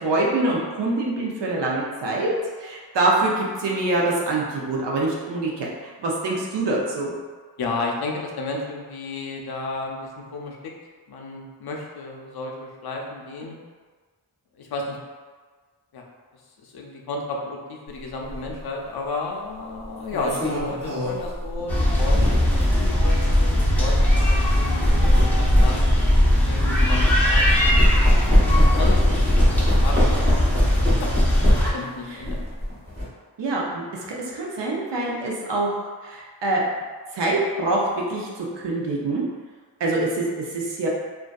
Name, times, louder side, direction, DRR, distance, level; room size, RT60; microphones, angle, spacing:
voice 1, 0.0-2.3 2.6-5.7 6.0-7.1 33.4-33.8 34.3-35.7 36.0-36.6 37.1-39.2 39.8-40.9, right 2 dB, 75° right, -3 dB, 0.6 m, -24 dB
voice 2, 7.6-10.6 11.1-13.6 14.5-15.0 15.9-16.1 16.6-25.9 26.5-27.9 28.2-29.2 29.8-30.5 31.0-31.1 31.6-32.4, left 3 dB, 60° left, 0 dB, 0.5 m, -32 dB
sound 1, 18.3-18.5 19.8-22.7 23.3-23.5 24.6-27.2 27.5-31.8 32.2-33.0, equal, 25° right, 1.1 m, -22 dB
sound 2, 21.7-31.7, left 1 dB, 5° left, 0.5 m, -20 dB
2.5 x 2.3 x 2.2 m, 1.5 s
wide cardioid pair, 80°, 43 cm